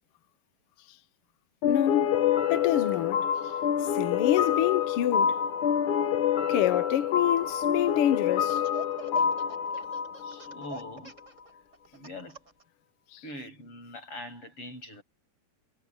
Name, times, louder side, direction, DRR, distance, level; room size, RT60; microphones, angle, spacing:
voice 1, 1.6-2.1 2.5-3.3 3.9-5.4 6.5-8.6 13.1-13.2, left 12 dB, 90° left, 1.2 m, -27 dB
sound 1, 1.6-10.9, left 8 dB, 65° left, 3.0 m, -27 dB
Laughter, 7.4-8.0 8.4-12.6, right 4 dB, 20° right, 4.6 m, -44 dB
voice 2, 10.2-11.2 11.9-12.4 13.2-15.0, left 1 dB, 40° left, 8.8 m, -43 dB
omnidirectional pair, 3.9 m